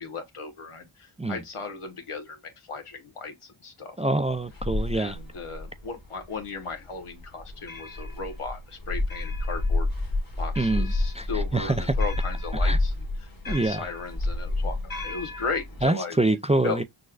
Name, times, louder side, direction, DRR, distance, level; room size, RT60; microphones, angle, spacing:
voice 1, 0.0-4.0 4.9-9.9 10.4-12.9 13.2-16.2 16.6-16.8, left 4 dB, 90° left, 1.2 m, -36 dB
voice 2, 4.0-5.2 10.6-11.9 12.6-12.8 13.5-13.9 15.8-16.8, right 2 dB, 15° right, 0.3 m, -25 dB
sound 1, 4.3-15.8, left 2 dB, 40° left, 1.5 m, -30 dB
6.4 x 2.3 x 2.3 m
wide cardioid pair, 50°, 50 cm